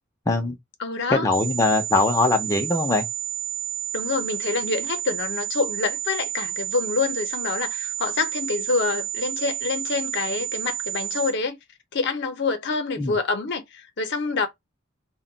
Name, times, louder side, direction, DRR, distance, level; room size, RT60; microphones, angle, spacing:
voice 1, 0.3-0.6 1.1-3.0 13.0-13.1, left 2 dB, 15° left, 0.5 m, -21 dB
voice 2, 0.8-1.3 3.9-11.6 11.9-14.5, left 4 dB, 60° left, 0.6 m, -26 dB
sound 1, 1.3-11.3, right 11 dB, 50° right, 1.1 m, -30 dB
2.2 x 2.1 x 3.7 m
head